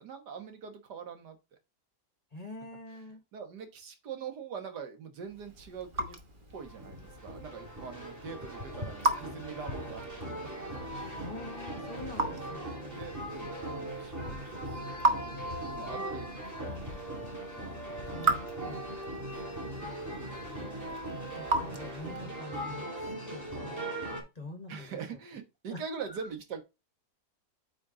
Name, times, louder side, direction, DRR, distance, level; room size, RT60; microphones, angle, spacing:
voice 1, 0.0-1.4 2.9-3.0 3.3-6.2 6.5-10.0 10.3-10.9 11.7-12.2 13.0-15.3 15.7-18.2 19.3-19.9 24.7-26.6, right 6 dB, 80° right, 7 dB, 1.9 m, -44 dB
voice 2, 2.3-3.2 11.2-13.1 18.1-19.0 19.8-20.7 21.1-25.2 25.7-25.8 26.1-26.3, left 2 dB, 30° left, 6 dB, 1.0 m, -46 dB
Raindrop / Drip, 5.2-22.4, right 2 dB, 35° right, 1.2 m, -37 dB
sound 1, 6.5-24.2, right 1 dB, 10° right, 2.6 m, -39 dB
8.9 x 4.2 x 3.8 m, 0.26 s
omnidirectional pair, 1.7 m